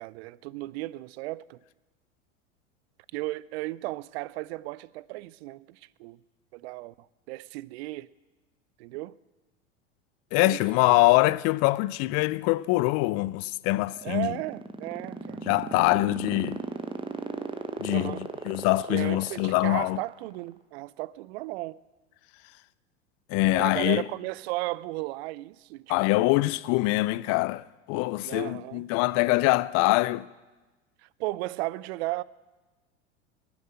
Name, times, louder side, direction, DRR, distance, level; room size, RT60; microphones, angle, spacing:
voice 1, 0.0-1.6 3.1-6.2 6.5-6.9 7.3-8.1 8.8-9.2 10.4-10.9 13.9-15.4 17.9-18.2 18.9-21.8 23.5-26.4 28.2-28.8 31.0-32.2, right 19 dB, 60° right, 0.5 m, -35 dB
voice 2, 10.3-14.4 15.5-16.6 17.8-20.0 23.3-24.0 25.9-30.3, left 20 dB, 45° left, 0.5 m, -24 dB
sound 1, 13.8-20.4, right 4 dB, 15° right, 1.1 m, -35 dB
20.0 x 7.2 x 7.8 m
hypercardioid pair, 85°, 36 cm